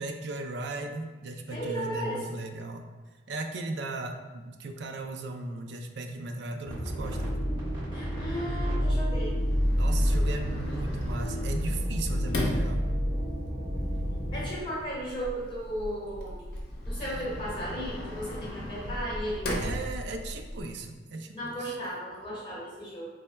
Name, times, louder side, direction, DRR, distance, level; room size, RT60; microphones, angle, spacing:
voice 1, 0.0-2.9 3.3-7.3 9.7-12.8 19.6-21.8, right 2 dB, 70° right, 5 dB, 0.4 m, -37 dB
voice 2, 1.5-2.4 7.9-9.4 14.3-16.4 16.8-19.4 21.3-23.0, equal, 25° left, -6 dB, 1.1 m, -35 dB
sound 1, 6.6-14.5, equal, 25° right, 1.3 m, -29 dB
Sliding door, 9.1-20.6, equal, 60° left, 0.7 m, -37 dB
3.2 x 2.1 x 4.2 m, 1.3 s
head